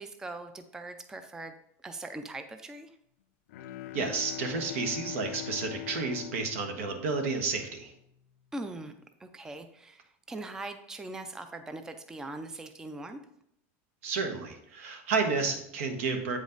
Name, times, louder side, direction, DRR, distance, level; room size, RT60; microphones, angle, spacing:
voice 1, 0.0-1.6 1.8-2.9 8.5-8.9 9.2-13.2, right 2 dB, 10° right, 8 dB, 0.4 m, -41 dB
Bowed string instrument, 3.5-7.8, left 14 dB, 70° left, 0.4 m, -42 dB
voice 2, 3.9-7.9 14.0-16.4, right 4 dB, 80° right, 5 dB, 1.4 m, -31 dB
8.1 x 5.1 x 3.9 m, 0.75 s
supercardioid pair, 155°, 7 cm